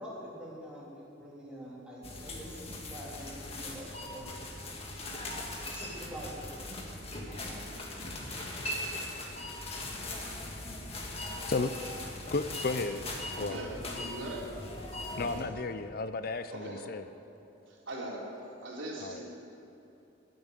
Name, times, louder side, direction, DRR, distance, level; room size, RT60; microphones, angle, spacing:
voice 1, 0.0-2.5 2.9-4.3 5.6-7.4, equal, 5° right, -7 dB, 3.3 m, -45 dB
sound 1, 2.0-15.4, left 1 dB, 30° left, 1.8 m, -40 dB
voice 2, 12.3-13.0 13.4-13.6 15.2-17.0 19.0-19.2, left 3 dB, 50° left, 11 dB, 0.5 m, -33 dB
voice 3, 13.4-14.6 15.1-15.4 16.5-16.9 17.7-19.3, right 1 dB, 80° right, -3 dB, 3.3 m, -41 dB
14.5 x 8.7 x 9.9 m, 2.9 s
head